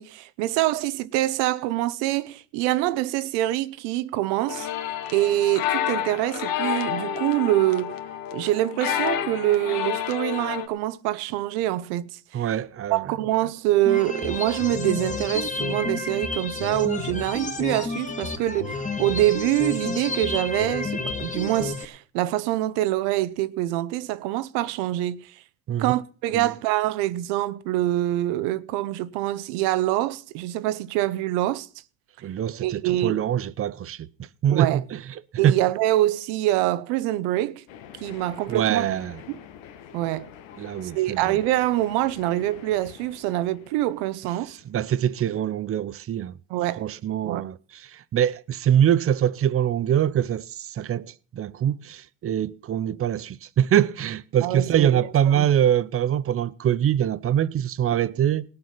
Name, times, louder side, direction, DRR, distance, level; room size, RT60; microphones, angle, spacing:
voice 1, 0.0-4.7 5.1-8.0 8.3-12.4 12.9-25.3 25.8-31.7 32.6-33.2 34.5-34.8 35.4-37.6 38.0-38.9 39.3-39.4 39.9-40.3 40.8-44.6 46.5-46.9 47.2-47.4 54.4-55.1 55.3-55.5, right 15 dB, 80° right, 1.0 m, -25 dB
sound 1, 4.5-10.7, left 10 dB, 55° left, 1.6 m, -29 dB
voice 2, 12.3-13.1 25.7-25.9 26.3-26.5 32.2-34.1 34.4-35.0 35.4-35.6 38.5-39.2 40.6-41.4 44.7-46.4 46.8-58.5, right 10 dB, 35° right, 0.7 m, -24 dB
sound 2, 13.9-21.9, left 3 dB, 20° left, 1.7 m, -30 dB
sound 3, 37.7-45.4, left 9 dB, 85° left, 1.7 m, -46 dB
18.5 x 7.8 x 5.7 m
supercardioid pair, 105°, 40 cm